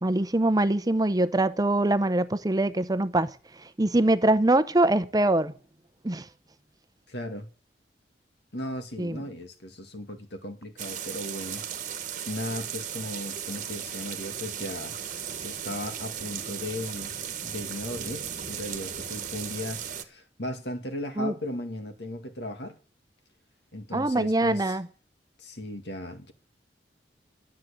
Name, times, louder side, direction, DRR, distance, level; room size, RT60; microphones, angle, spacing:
voice 1, 0.0-3.3 3.8-5.5 6.0-6.2 9.0-9.2 21.2-21.3 23.9-24.9, right 2 dB, 20° right, 0.8 m, -23 dB
voice 2, 7.1-7.5 8.5-11.9 12.2-15.0 15.4-17.1 17.4-22.8 23.7-24.8 25.4-26.3, left 1 dB, 70° left, 2.1 m, -36 dB
sound 1, 10.8-20.0, right 8 dB, 45° right, 1.4 m, -36 dB
12.5 x 7.6 x 8.5 m
head